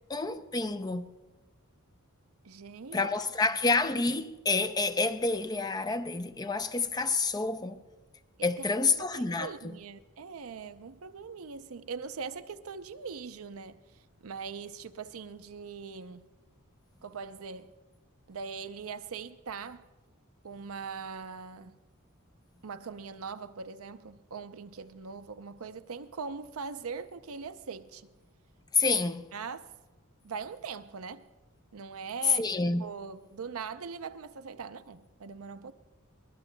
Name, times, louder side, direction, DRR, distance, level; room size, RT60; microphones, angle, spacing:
voice 1, 0.1-1.1 2.9-7.8 8.4-9.8 28.7-29.3 32.3-32.8, left 3 dB, 20° left, 0.5 m, -28 dB
voice 2, 2.4-3.1 8.4-8.7 9.1-13.8 14.2-16.3 17.0-17.7 18.3-19.9 20.4-21.8 22.6-28.1 29.3-29.7 30.2-31.3 31.7-32.5 32.8-35.7, right 5 dB, 75° right, 0.6 m, -41 dB
23.0 x 19.0 x 2.2 m
head